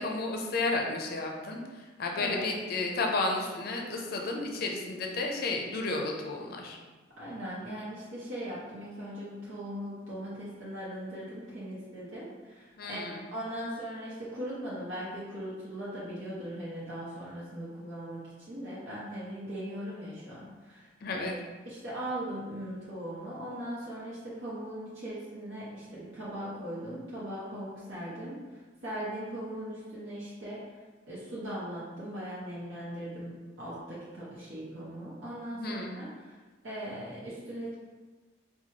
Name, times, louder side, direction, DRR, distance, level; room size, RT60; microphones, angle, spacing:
voice 1, 0.0-6.8 12.8-13.2 21.0-21.3 35.5-35.9, left 3 dB, 50° left, 2 dB, 0.5 m, -32 dB
voice 2, 2.2-2.5 7.2-13.0 13.3-21.3 21.6-30.8 31.1-36.4 36.6-37.7, right 1 dB, 85° right, -9 dB, 0.8 m, -39 dB
4.5 x 2.3 x 2.8 m, 1.3 s
head